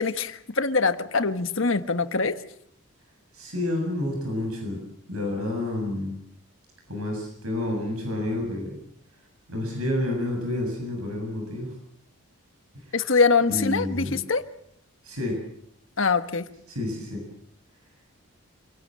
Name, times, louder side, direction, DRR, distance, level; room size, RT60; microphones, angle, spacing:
voice 1, 0.0-2.4 12.9-14.4 16.0-16.4, left 4 dB, 65° left, 10 dB, 1.4 m, -23 dB
voice 2, 3.3-4.8 5.1-6.1 6.9-8.8 9.5-11.7 12.7-13.0 13.5-14.2 15.0-15.4 16.7-17.2, left 1 dB, 85° right, 2 dB, 7.4 m, -29 dB
27.0 x 17.5 x 7.6 m, 0.71 s
head